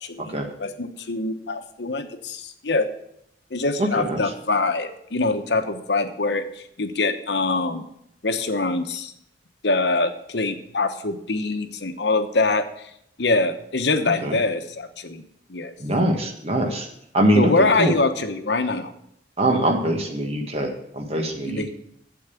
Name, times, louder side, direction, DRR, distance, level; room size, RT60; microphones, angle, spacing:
voice 1, 0.0-2.9 3.5-7.8 8.2-9.1 9.6-12.9 13.2-15.2 15.5-15.7 17.3-18.9 21.5-21.7, left 3 dB, 70° left, 8 dB, 1.1 m, -24 dB
voice 2, 3.8-4.2 14.2-14.4 15.8-16.9 17.1-17.9 19.4-21.7, right 1 dB, 35° right, 3 dB, 1.6 m, -23 dB
8.6 x 7.9 x 7.1 m, 0.76 s
head